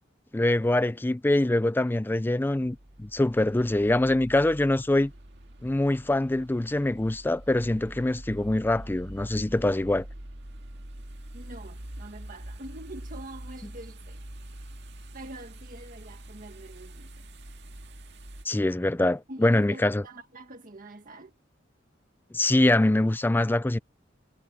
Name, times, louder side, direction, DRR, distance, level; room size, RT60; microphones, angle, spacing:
voice 1, 0.3-5.1 5.6-10.1 18.4-20.0 22.3-23.8, left 1 dB, 10° left, 0.4 m, -24 dB
sound 1, 2.3-18.5, right 1 dB, 65° right, 2.0 m, -44 dB
voice 2, 11.3-14.2 15.1-17.3 19.3-21.3, right 1 dB, 45° right, 1.6 m, -45 dB
head